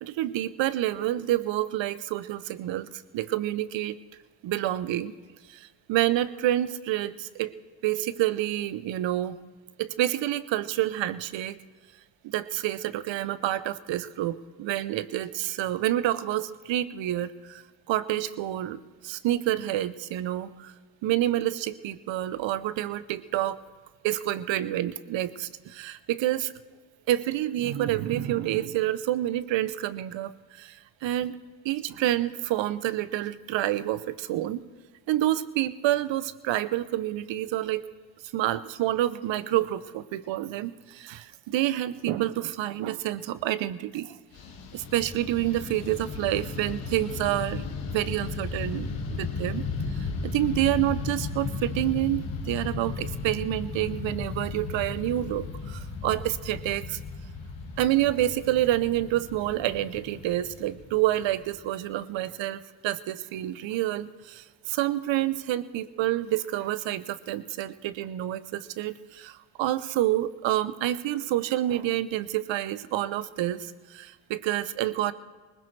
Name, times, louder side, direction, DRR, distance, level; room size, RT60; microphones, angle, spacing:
voice 1, 0.0-2.9 3.1-4.0 4.4-5.1 5.5-7.5 7.8-9.4 9.8-11.6 12.2-17.6 17.9-20.7 21.0-23.6 24.0-26.5 27.1-31.4 31.6-34.6 35.1-37.8 38.3-44.2 44.7-47.6 47.9-48.9 49.1-49.6 49.9-57.0 57.8-75.1, right 14 dB, 70° right, 16 dB, 0.8 m, -28 dB
Fixed-wing aircraft airplane, 44.3-61.8, left 4 dB, 75° left, 1.9 m, -35 dB
20.5 x 19.5 x 3.3 m, 1.5 s
supercardioid pair, 55°, 46 cm